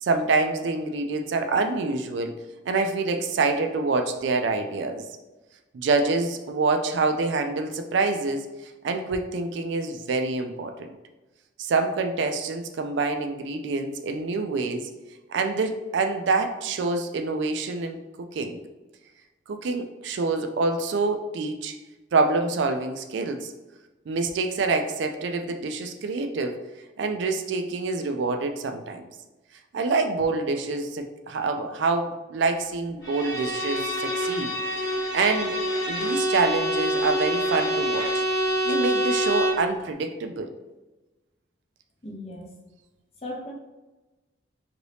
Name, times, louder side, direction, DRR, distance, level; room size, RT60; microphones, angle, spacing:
voice 1, 0.0-2.4 2.7-5.0 5.7-8.4 8.8-10.9 11.6-14.9 15.3-18.6 19.5-21.7 22.1-23.5 24.1-26.6 27.0-29.0 29.7-35.6 35.9-38.2 38.6-40.5, right 3 dB, 70° right, 6 dB, 0.3 m, -26 dB
Bowed string instrument, 33.0-39.7, equal, 60° left, 1.0 m, -26 dB
voice 2, 42.0-42.5 43.2-43.5, left 1 dB, 30° left, -1 dB, 0.6 m, -36 dB
2.9 x 2.6 x 3.2 m, 1.1 s
head